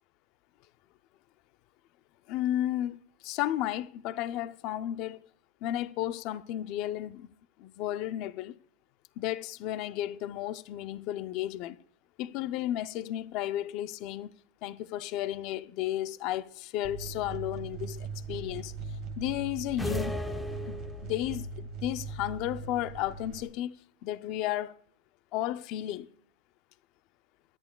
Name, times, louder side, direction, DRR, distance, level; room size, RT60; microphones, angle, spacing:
voice 1, 2.3-5.3 5.6-7.3 7.6-8.6 9.2-11.8 12.2-14.3 14.6-18.7 19.2-20.2 20.7-23.8 24.0-24.8 25.3-26.1, left 13 dB, 35° left, 0.5 m, -33 dB
sound 1, 16.8-23.4, right 4 dB, 35° right, 1.3 m, -40 dB
sound 2, 19.8-21.3, left 1 dB, 5° left, 0.7 m, -35 dB
22.0 x 11.0 x 2.2 m
supercardioid pair, 175°, 0 cm